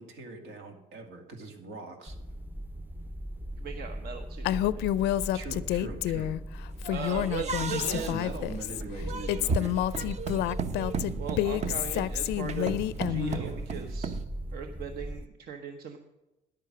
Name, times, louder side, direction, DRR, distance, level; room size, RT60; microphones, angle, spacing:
voice 1, 0.0-2.2 5.1-6.3 7.6-9.8 13.4-13.5, right 2 dB, 80° right, 4 dB, 2.4 m, -41 dB
sound 1, 2.1-15.3, equal, 10° right, 0.6 m, -39 dB
voice 2, 3.6-4.8 6.9-8.3 11.2-12.8 13.1-14.1 14.5-16.0, right 6 dB, 65° right, 6 dB, 1.0 m, -39 dB
Female speech woman speaking, 4.4-6.4 6.8-8.8 9.3-13.4, left 13 dB, 85° left, 0.5 m, -29 dB
sound 2, 6.8-14.3, right 5 dB, 40° right, 0.8 m, -35 dB
10.5 x 8.7 x 6.1 m, 0.99 s
cardioid pair, 110°, 17 cm